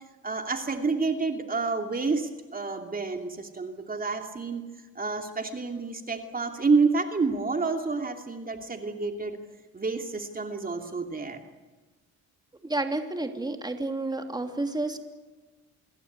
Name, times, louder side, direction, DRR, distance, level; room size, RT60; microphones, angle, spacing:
voice 1, 0.2-4.6 4.9-9.4 9.7-11.4, right 4 dB, 30° right, 4 dB, 2.9 m, -29 dB
voice 2, 12.6-15.0, right 2 dB, 15° right, 5 dB, 3.0 m, -30 dB
27.5 x 22.0 x 8.3 m, 1.3 s
cardioid pair, 90°, 30 cm